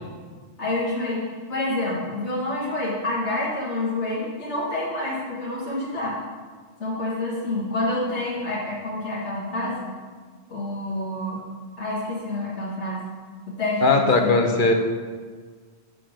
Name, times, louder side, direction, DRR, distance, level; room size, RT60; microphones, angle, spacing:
voice 1, 0.6-6.2 6.8-9.9 10.5-11.4 11.8-13.0 13.5-14.4, left 2 dB, 85° left, -6 dB, 1.8 m, -28 dB
voice 2, 13.8-14.7, left 3 dB, 50° left, 4 dB, 0.9 m, -18 dB
6.5 x 5.9 x 6.3 m, 1.5 s
omnidirectional pair, 1.1 m